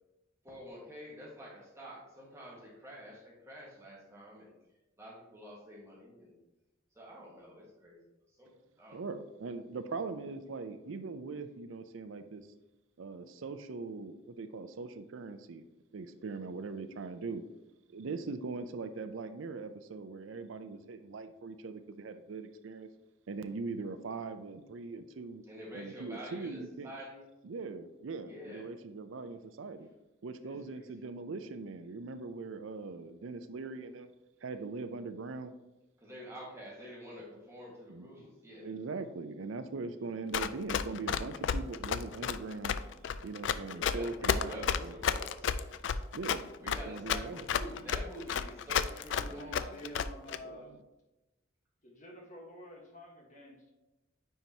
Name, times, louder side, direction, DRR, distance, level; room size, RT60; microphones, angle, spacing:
voice 1, 0.4-4.5 5.0-6.3 6.9-8.0 8.3-8.5 8.8-9.0 16.2-16.5 25.5-27.2 28.2-28.7 30.4-30.5 36.0-38.7 43.7-45.8 46.6-49.9, equal, 15° right, -4 dB, 1.6 m, -48 dB
voice 2, 8.9-12.4 13.0-15.6 15.9-17.4 17.9-22.9 23.3-25.4 25.7-26.9 27.4-29.9 30.2-34.1 34.4-35.5 37.9-38.1 38.6-45.0 46.1-47.5 50.4-50.8, right 4 dB, 75° right, 9 dB, 0.5 m, -41 dB
Run, 40.3-50.4, left 7 dB, 65° left, 0.3 m, -32 dB
voice 3, 49.1-50.8 51.8-53.7, equal, 40° left, -1 dB, 1.3 m, -48 dB
9.3 x 4.6 x 2.8 m, 1.0 s
head